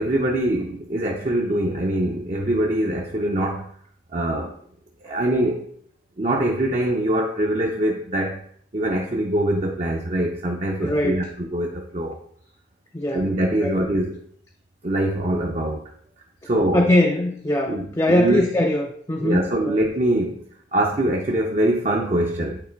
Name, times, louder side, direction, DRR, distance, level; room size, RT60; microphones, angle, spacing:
voice 1, 0.0-3.7 4.1-4.5 5.0-5.6 6.2-8.4 8.7-12.2 13.1-14.2 14.8-15.8 16.4-16.8 17.7-18.5 19.2-20.4 20.7-22.6, right 1 dB, 40° right, -1 dB, 0.7 m, -23 dB
voice 2, 10.8-11.3 12.9-13.3 13.6-13.8 16.7-19.8, left 1 dB, 20° left, 2 dB, 0.5 m, -21 dB
8.9 x 3.2 x 4.5 m, 0.64 s
head